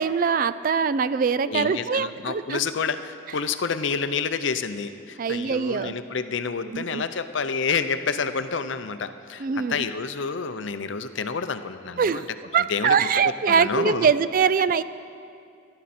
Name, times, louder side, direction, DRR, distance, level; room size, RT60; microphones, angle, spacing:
voice 1, 0.0-2.6 5.2-5.9 6.7-7.0 9.4-9.8 12.0-12.2 12.5-14.8, right 6 dB, 40° right, 15 dB, 0.3 m, -23 dB
voice 2, 1.5-12.3 12.7-13.1 13.5-14.1, left 5 dB, 60° left, 10 dB, 0.6 m, -29 dB
19.5 x 12.0 x 4.3 m, 2.4 s
head